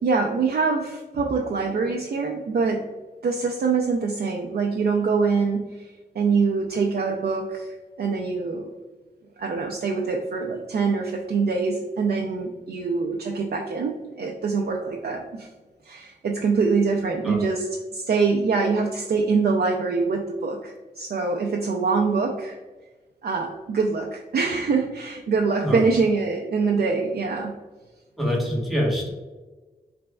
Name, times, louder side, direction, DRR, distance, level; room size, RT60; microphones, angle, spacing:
voice 1, 0.0-2.8 3.2-8.7 9.4-15.5 15.8-22.6 23.2-27.5, right 4 dB, 70° right, 0 dB, 0.5 m, -24 dB
voice 2, 28.2-29.1, equal, ahead, -4 dB, 1.3 m, -24 dB
5.1 x 3.4 x 2.2 m, 1.3 s
wide cardioid pair, 95°, 16 cm